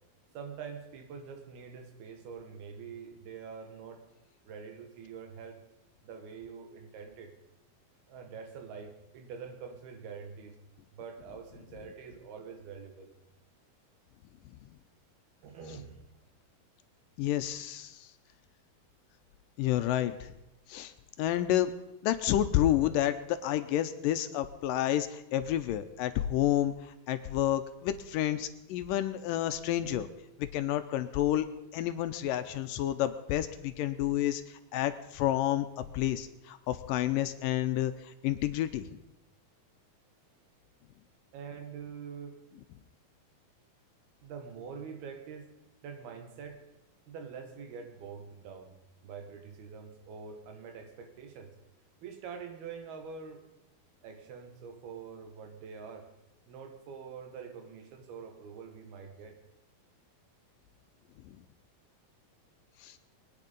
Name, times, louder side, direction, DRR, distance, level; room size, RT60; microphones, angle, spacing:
voice 1, 0.4-4.0 4.5-5.6 6.0-7.3 8.1-10.6 10.9-13.1 15.4-16.0 41.3-42.4 44.2-45.5 45.8-46.6 47.1-48.8 49.0-51.5 52.0-53.5 54.0-56.1 56.5-59.4, right 6 dB, 85° right, 6 dB, 3.7 m, -45 dB
voice 2, 17.2-18.1 19.6-20.3 20.7-20.9 21.2-21.7 22.0-30.1 30.4-31.5 31.7-39.0 61.2-61.4 62.8-63.0, left 12 dB, 80° left, 10 dB, 2.2 m, -30 dB
22.5 x 9.7 x 5.3 m, 0.91 s
omnidirectional pair, 4.3 m